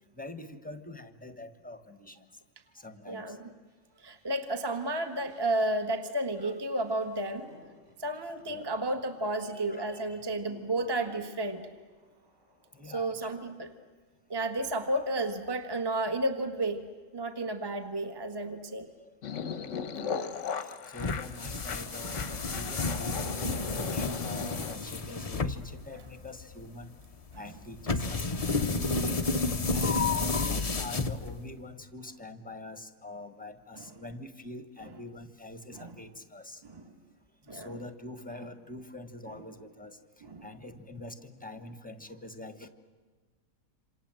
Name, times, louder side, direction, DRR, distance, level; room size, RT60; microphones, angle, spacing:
voice 1, 0.2-2.2 2.7-3.4 6.4-6.6 8.5-8.6 9.4-10.2 12.7-13.3 14.4-14.5 19.0-19.1 19.6-20.2 20.6-26.9 27.3-36.6 37.5-42.7, left 2 dB, 5° left, 9 dB, 1.2 m, -45 dB
voice 2, 3.0-3.5 4.0-7.5 8.0-11.6 12.8-13.7 14.3-16.8 17.1-18.9 27.3-27.4 28.3-28.5 30.0-30.3 33.8-33.9 35.7-35.9 36.6-36.9 37.5-37.8 40.2-40.5, right 1 dB, 15° right, 7 dB, 1.4 m, -32 dB
sound 1, 3.7-9.6 9.9-13.3, left 1 dB, 35° right, 7.8 m, -59 dB
sound 2, 19.2-24.7, left 6 dB, 50° left, 1.2 m, -38 dB
sound 3, 21.0-31.6, left 3 dB, 35° left, 0.6 m, -31 dB
27.5 x 27.0 x 7.7 m, 1.4 s
omnidirectional pair, 1.8 m